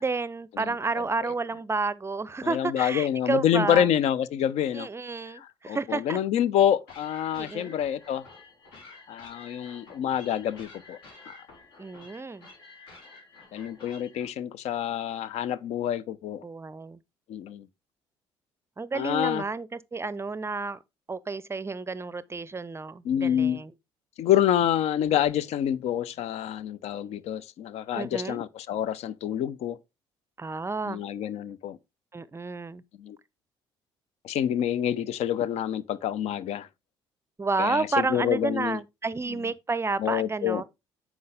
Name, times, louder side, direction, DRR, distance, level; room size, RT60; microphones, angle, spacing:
voice 1, 0.0-3.9 4.7-6.2 7.3-7.7 11.8-12.5 16.4-17.0 18.8-20.8 21.1-23.7 27.9-28.4 30.4-31.0 32.1-32.8 37.4-40.6, right 3 dB, 20° right, 0.6 m, -31 dB
voice 2, 2.4-4.9 5.3-8.2 9.1-11.0 11.3-11.4 13.5-16.4 17.3-17.7 18.9-19.4 23.0-23.6 24.2-29.8 30.9-31.8 33.0-33.2 34.2-36.7 37.6-38.8 40.0-40.6, left 10 dB, 50° left, 0.7 m, -27 dB
sound 1, 6.9-14.3, left 3 dB, 65° left, 3.6 m, -50 dB
9.4 x 6.1 x 3.4 m
figure-of-eight pair, 50°, 14 cm